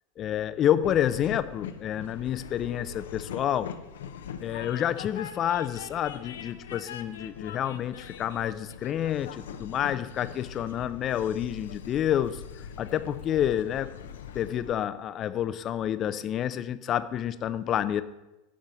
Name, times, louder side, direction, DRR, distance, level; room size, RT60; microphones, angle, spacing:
voice 1, 0.2-3.7 4.4-12.4 12.8-13.9 14.3-18.0, left 10 dB, 40° left, 13 dB, 0.6 m, -29 dB
Train, 0.8-14.7, left 7 dB, 80° left, 0.7 m, -42 dB
11.0 x 3.8 x 7.3 m, 0.98 s
hypercardioid pair, 90°, 0 cm